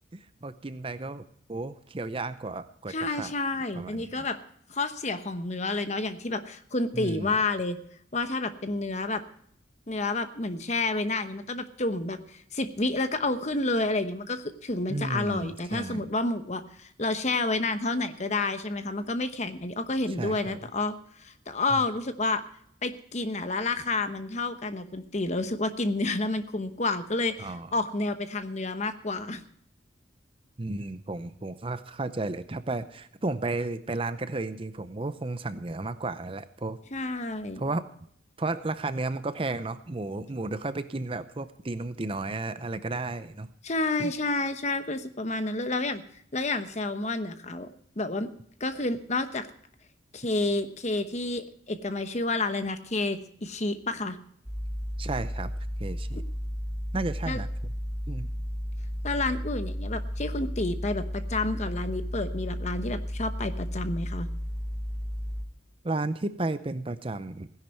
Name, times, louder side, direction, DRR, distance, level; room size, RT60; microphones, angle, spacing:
voice 1, 0.1-3.3 3.7-4.3 6.9-7.3 14.9-16.1 20.2-20.6 21.7-21.8 27.4-27.7 30.6-36.8 37.6-37.9 38.4-43.5 44.0-44.1 55.0-55.5 55.8-56.2 56.9-57.5 58.1-58.3 65.8-67.5, right 2 dB, 30° right, 12 dB, 0.6 m, -33 dB
voice 2, 2.9-4.4 4.7-7.8 8.1-9.2 9.9-22.4 22.8-29.4 36.9-37.6 43.6-46.0 46.3-47.7 48.0-48.3 48.6-49.5 50.1-54.2 57.3-57.4 59.0-64.3, left 2 dB, 35° left, 10 dB, 1.0 m, -30 dB
sound 1, 54.4-65.4, equal, 5° right, 1.3 m, -33 dB
16.5 x 10.5 x 4.4 m, 0.66 s
head